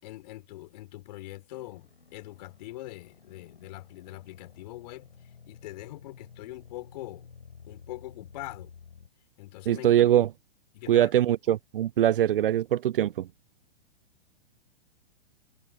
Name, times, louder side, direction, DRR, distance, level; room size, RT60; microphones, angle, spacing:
voice 1, 0.0-5.1 5.4-7.3 7.7-8.7 9.4-9.9 10.7-11.3, left 17 dB, 45° left, 4.4 m, -43 dB
sound 1, 1.5-9.1, left 6 dB, 70° left, 4.4 m, -52 dB
voice 2, 9.7-10.3 10.9-13.3, right 11 dB, 65° right, 0.4 m, -22 dB
figure-of-eight pair, 110°, 30 cm